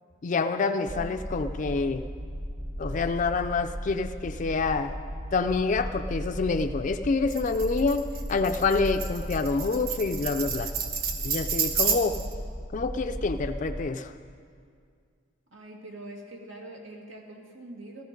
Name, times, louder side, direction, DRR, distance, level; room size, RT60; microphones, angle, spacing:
voice 1, 0.2-2.1 2.8-4.9 5.3-8.0 8.3-10.7 11.2-12.2 12.7-14.1, left 4 dB, 40° left, 6 dB, 0.4 m, -27 dB
voice 2, 0.7-1.1 15.5-18.0, right 1 dB, 85° right, 0 dB, 2.2 m, -44 dB
sound 1, 0.9-13.8, equal, 20° right, 1.0 m, -36 dB
Tambourine, 7.3-12.3, right 7 dB, 50° right, 1.2 m, -31 dB
15.0 x 13.5 x 5.2 m, 2.2 s
head